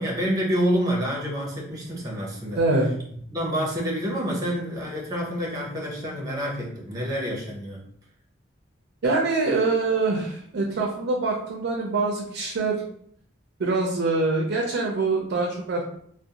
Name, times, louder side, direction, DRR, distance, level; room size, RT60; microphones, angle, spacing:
voice 1, 0.0-2.6 3.3-7.8, equal, 20° right, -3 dB, 0.7 m, -28 dB
voice 2, 2.5-2.9 9.0-12.8 13.6-15.8, right 3 dB, 60° right, 0 dB, 0.4 m, -24 dB
2.5 x 2.0 x 2.8 m, 0.65 s
head